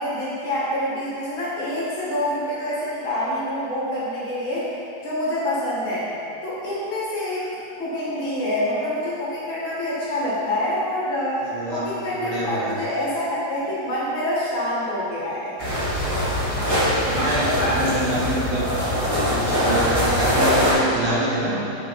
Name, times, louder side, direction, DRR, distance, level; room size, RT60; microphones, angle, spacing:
voice 1, 0.0-6.1 6.4-7.5 7.8-15.5, left 1 dB, 45° left, -8 dB, 2.1 m, -26 dB
voice 2, 11.4-12.8 16.8-18.7 19.1-21.6, right 1 dB, 70° right, -4 dB, 2.2 m, -26 dB
sound 1, 15.6-20.7, equal, 15° right, 1.1 m, -22 dB
6.9 x 5.7 x 5.7 m, 2.8 s
omnidirectional pair, 3.4 m